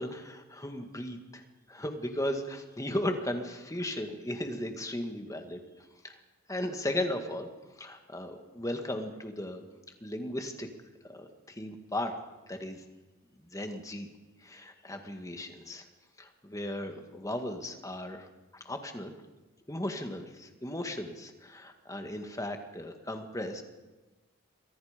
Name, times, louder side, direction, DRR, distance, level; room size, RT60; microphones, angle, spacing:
voice 1, 0.0-1.4 1.7-6.2 6.5-7.5 7.8-9.6 10.0-10.7 11.1-12.1 12.5-12.8 13.5-14.1 14.4-15.9 16.2-18.3 18.5-19.1 19.7-23.6, left 1 dB, 15° left, 5 dB, 1.9 m, -36 dB
28.0 x 24.0 x 5.2 m, 1.1 s
head